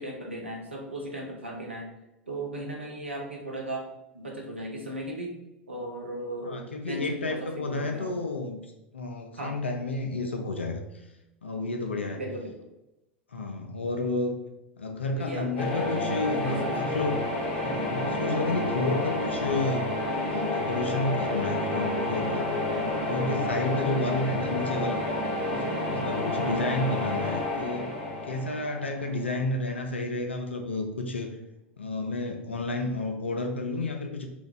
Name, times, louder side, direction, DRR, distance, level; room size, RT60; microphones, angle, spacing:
voice 1, 0.0-1.9 2.3-3.9 4.1-5.4 5.7-8.1 9.4-9.6 12.1-12.5 15.2-16.7 26.4-26.8, right 1 dB, 80° right, 0 dB, 0.7 m, -36 dB
voice 2, 6.4-11.0 11.4-12.2 13.3-14.4 14.8-17.3 17.6-19.9 20.3-22.5 22.8-25.0 25.5-27.8 28.3-31.4 31.8-34.3, left 2 dB, 80° left, 3 dB, 0.4 m, -31 dB
sound 1, 15.6-29.4, left 1 dB, 60° left, 0.9 m, -29 dB
2.6 x 2.2 x 3.7 m, 0.92 s
figure-of-eight pair, 80°, 6 cm